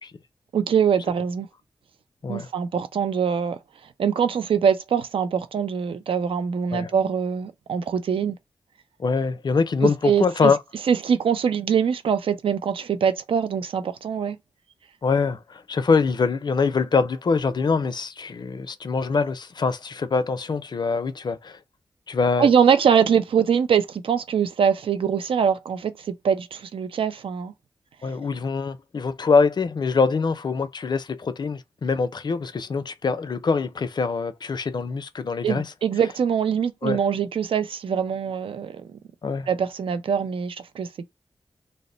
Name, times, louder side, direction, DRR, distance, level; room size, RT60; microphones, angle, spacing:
voice 1, 0.5-1.5 2.3-3.6 4.0-8.4 10.0-10.5 10.9-14.4 22.4-27.5 35.4-39.0 39.5-41.0, right 7 dB, 80° right, 0.4 m, -23 dB
voice 2, 9.0-10.6 15.0-21.6 22.1-22.5 28.0-35.7 36.8-37.0 39.2-39.5, left 4 dB, 55° left, 0.4 m, -24 dB
2.1 x 2.0 x 3.7 m
cardioid pair, 45°, 9 cm